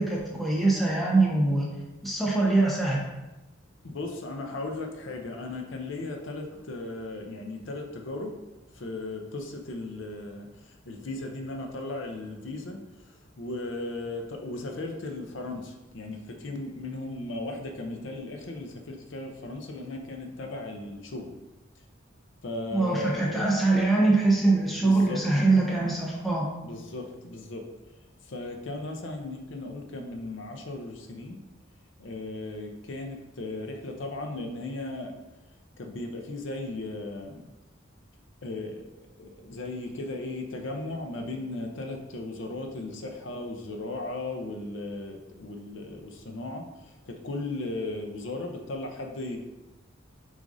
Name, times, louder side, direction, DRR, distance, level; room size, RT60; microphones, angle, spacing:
voice 1, 0.0-1.8 2.0-3.0 22.7-26.5, right 2 dB, ahead, -4 dB, 0.6 m, -23 dB
voice 2, 3.8-8.3 8.7-21.3 22.4-23.4 24.8-25.2 26.6-27.6 28.3-31.4 32.0-35.1 35.8-37.5 38.4-49.4, left 2 dB, 65° left, 3 dB, 0.5 m, -36 dB
6.1 x 2.5 x 2.6 m, 1.0 s
head